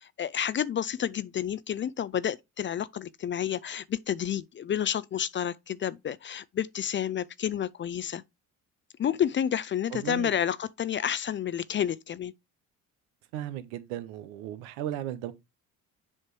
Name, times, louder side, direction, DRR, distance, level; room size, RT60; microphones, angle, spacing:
voice 1, 0.0-8.2 9.0-12.3, left 9 dB, 30° left, 0.4 m, -30 dB
voice 2, 9.9-10.3 13.3-15.3, right 12 dB, 85° right, 0.8 m, -36 dB
7.5 x 2.9 x 4.7 m
hypercardioid pair, 65°, 41 cm